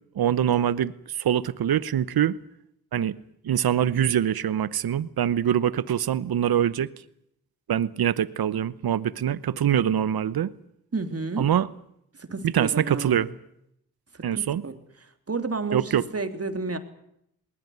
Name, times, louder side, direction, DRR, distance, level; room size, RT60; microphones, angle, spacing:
voice 1, 0.2-2.4 2.9-3.1 3.4-6.9 7.7-10.5 11.4-11.7 12.4-13.3 14.2-14.6 15.7-16.0, right 10 dB, 75° right, 1.0 m, -24 dB
voice 2, 10.9-11.5 12.2-13.3 14.1-14.8 15.3-16.8, right 3 dB, 40° right, 3.3 m, -31 dB
20.0 x 20.0 x 9.5 m
cardioid pair, 55°, 37 cm